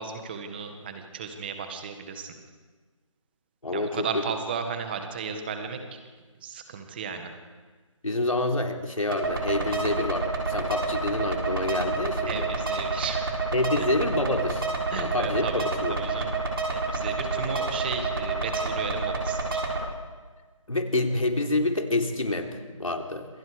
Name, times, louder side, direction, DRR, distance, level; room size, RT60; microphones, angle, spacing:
voice 1, 0.0-2.3 3.7-6.0 6.4-7.3 12.2-13.3 13.8-13.9 14.9-16.4 16.7-19.6, right 6 dB, 20° right, 6 dB, 1.8 m, -35 dB
voice 2, 3.6-4.1 8.0-12.5 13.5-14.6 14.9-15.9 20.7-23.3, left 2 dB, 85° left, 3 dB, 3.7 m, -27 dB
sound 1, 9.1-19.8, right 3 dB, 45° right, 6.8 m, -29 dB
27.0 x 24.0 x 5.1 m, 1.4 s
figure-of-eight pair, 165°, 17 cm